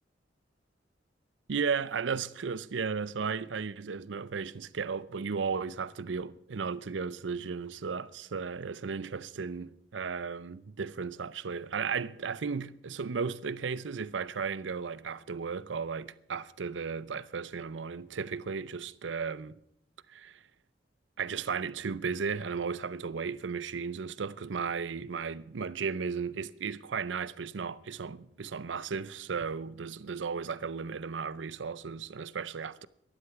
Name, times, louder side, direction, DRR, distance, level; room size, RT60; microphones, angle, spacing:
voice 1, 1.5-19.6 20.1-20.4 21.2-32.9, right 5 dB, 90° right, 0.6 m, -35 dB
13.0 x 11.5 x 5.9 m
head